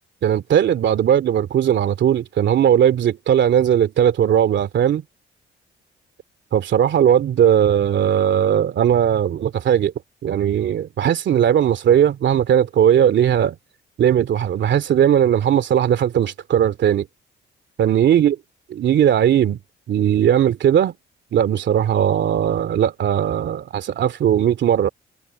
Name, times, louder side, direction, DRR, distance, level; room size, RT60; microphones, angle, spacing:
voice 1, 0.2-5.0 6.5-9.9 10.2-13.6 14.0-17.1 17.8-18.3 18.8-19.6 19.9-20.9 21.3-24.9, right 9 dB, 65° right, 2.5 m, -18 dB
cardioid pair, 90°, 20 cm